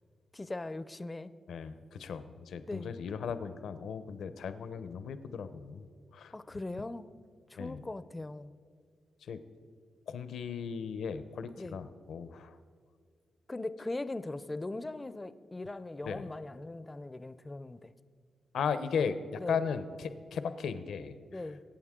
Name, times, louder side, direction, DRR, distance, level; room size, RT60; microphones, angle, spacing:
voice 1, 0.3-1.3 2.7-2.9 6.3-7.1 7.5-8.5 11.6-11.8 13.5-17.9 19.4-19.6 21.3-21.6, left 2 dB, 15° left, 14 dB, 0.4 m, -40 dB
voice 2, 1.5-5.9 6.1-6.3 7.6-7.8 9.2-9.4 10.1-12.6 16.0-16.3 18.5-21.4, left 6 dB, 80° left, 11 dB, 0.7 m, -36 dB
23.0 x 8.9 x 3.7 m, 2.1 s
wide cardioid pair, 130°, 0 cm